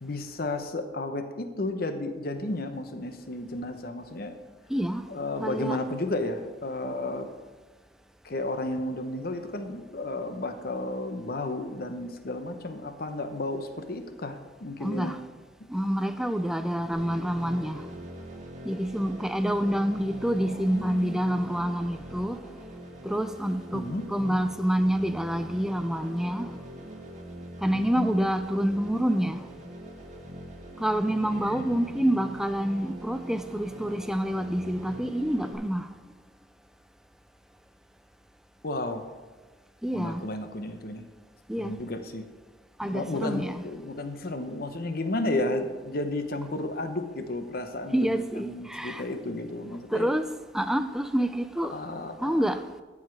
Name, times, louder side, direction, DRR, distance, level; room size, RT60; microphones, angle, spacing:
voice 1, 0.0-4.3 5.1-7.3 8.2-15.2 20.4-21.2 23.7-24.4 27.7-28.1 31.3-31.9 38.6-39.0 39.9-41.0 41.6-42.3 42.8-50.1 51.7-52.5, left 2 dB, 50° left, 0.8 m, -33 dB
voice 2, 4.7-5.0 5.4-5.8 14.8-15.2 15.7-17.8 18.7-22.4 23.0-23.8 24.1-26.5 27.6-29.4 30.8-35.9 39.8-40.3 41.5-41.7 42.8-43.6 47.9-49.0 49.9-50.3 50.5-51.8 52.2-52.6, equal, 5° right, 0.4 m, -27 dB
sound 1, 16.9-35.5, right 1 dB, 40° right, 1.3 m, -43 dB
14.5 x 4.8 x 4.6 m
head